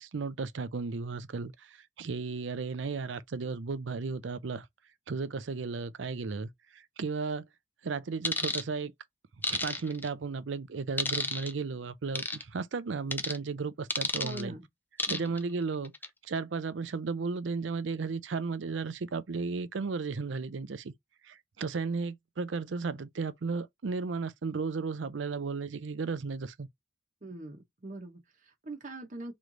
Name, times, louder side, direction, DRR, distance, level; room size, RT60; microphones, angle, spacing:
voice 1, 0.0-4.7 5.1-7.4 7.8-8.9 9.5-14.6 15.1-15.9 16.2-20.9 21.2-26.7, right 4 dB, 80° right, 0.5 m, -34 dB
sound 1, 8.2-8.6 9.4-10.1 11.0-11.5 12.2-12.4 13.1-13.4 13.9-14.4 15.0-15.4 15.8-16.1, left 2 dB, 10° left, 0.5 m, -31 dB
voice 2, 14.2-14.6 15.1-15.4 27.2-29.3, right 2 dB, 40° right, 0.9 m, -42 dB
3.2 x 3.1 x 3.7 m
head